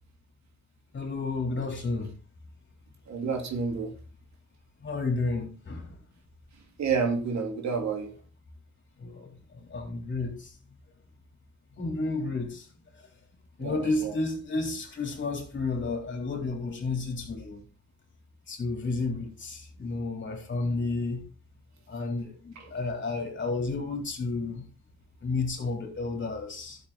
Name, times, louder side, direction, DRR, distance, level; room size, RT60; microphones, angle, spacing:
voice 1, 0.9-2.1 4.8-6.0 9.0-10.5 11.8-12.7 13.6-17.6 18.5-21.3 21.9-24.6 25.2-26.8, left 3 dB, 40° left, 3.7 m, -31 dB
voice 2, 3.1-3.9 6.8-8.1 13.6-14.1 22.6-22.7, right 5 dB, 65° right, 2.5 m, -29 dB
12.0 x 7.1 x 4.2 m
cardioid pair, 90°, 30 cm